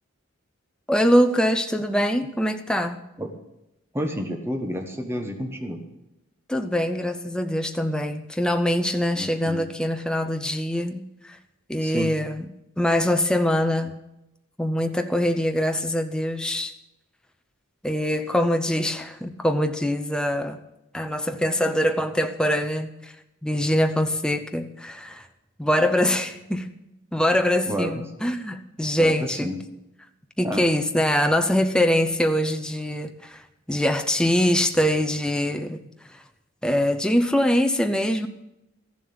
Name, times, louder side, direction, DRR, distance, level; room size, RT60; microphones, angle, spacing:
voice 1, 0.9-3.0 6.5-11.4 11.7-12.5 12.8-14.0 14.6-16.7 17.8-20.6 20.9-23.1 23.4-25.2 25.6-26.7 27.1-29.5 30.4-33.4 33.7-35.8 36.6-38.3, equal, 5° left, 0.6 m, -23 dB
voice 2, 3.9-5.8 9.1-9.7 11.8-12.1 27.7-28.0 29.0-29.6 30.4-30.6, equal, 10° right, 1.2 m, -30 dB
14.0 x 7.4 x 8.6 m
head